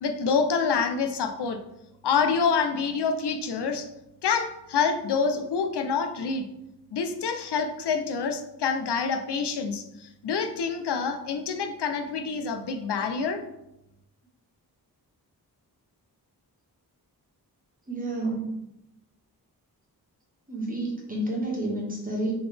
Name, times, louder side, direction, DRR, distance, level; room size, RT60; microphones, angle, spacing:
voice 1, 0.0-1.6 2.0-3.9 4.2-6.4 6.9-13.4, left 5 dB, 90° left, 6 dB, 0.6 m, -27 dB
voice 2, 17.9-18.5 20.5-22.3, right 1 dB, 20° right, -3 dB, 1.3 m, -30 dB
4.0 x 3.9 x 3.3 m, 0.85 s
wide cardioid pair, 120°, 39 cm